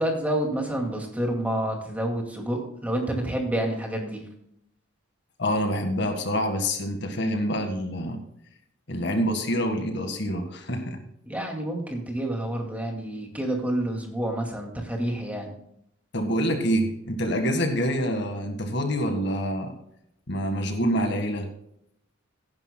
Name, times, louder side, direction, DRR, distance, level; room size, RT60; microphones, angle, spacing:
voice 1, 0.0-4.2 11.2-15.5, right 1 dB, 10° right, 1 dB, 2.2 m, -28 dB
voice 2, 5.4-8.2 8.9-11.0 16.1-19.7 20.3-21.5, equal, 60° left, 6 dB, 1.7 m, -26 dB
16.5 x 10.5 x 2.2 m, 0.74 s
head